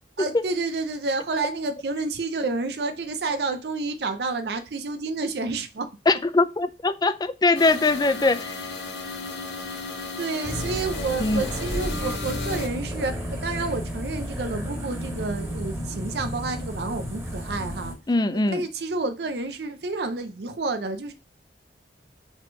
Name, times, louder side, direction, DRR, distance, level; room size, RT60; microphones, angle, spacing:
voice 1, 0.2-5.9 9.7-9.8 10.2-17.9 18.3-21.1, right 3 dB, 65° right, 0.5 m, -29 dB
voice 2, 6.1-8.7 11.2-11.4 18.1-18.6, left 3 dB, 25° left, 0.4 m, -22 dB
sound 1, 7.5-12.7, left 3 dB, 85° left, 1.8 m, -34 dB
sound 2, 10.4-17.9, equal, 15° right, 2.0 m, -32 dB
5.0 x 3.7 x 5.2 m
head